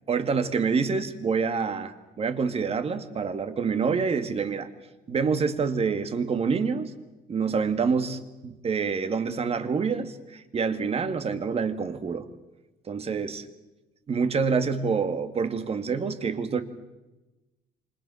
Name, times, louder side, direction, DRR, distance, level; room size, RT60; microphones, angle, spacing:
voice 1, 0.1-4.7 5.1-6.9 7.3-12.3 12.9-13.4 14.1-16.6, right 5 dB, 35° right, 9 dB, 2.3 m, -27 dB
28.0 x 25.5 x 6.5 m, 1.1 s
cardioid pair, 110°, 17 cm